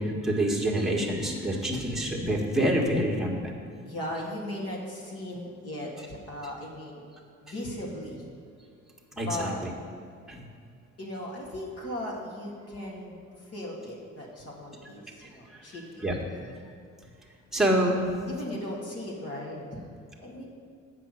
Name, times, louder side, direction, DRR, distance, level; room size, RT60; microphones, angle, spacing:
voice 1, 0.0-3.5 9.2-9.5 10.3-10.4 16.0-16.5 17.5-18.1, right 1 dB, ahead, -2 dB, 1.7 m, -26 dB
voice 2, 3.8-7.0 7.4-8.3 9.1-9.6 11.0-16.1 18.3-19.9 20.2-20.4, left 1 dB, 50° left, -3 dB, 2.1 m, -37 dB
8.1 x 5.9 x 6.6 m, 2.2 s
cardioid pair, 90°, 30 cm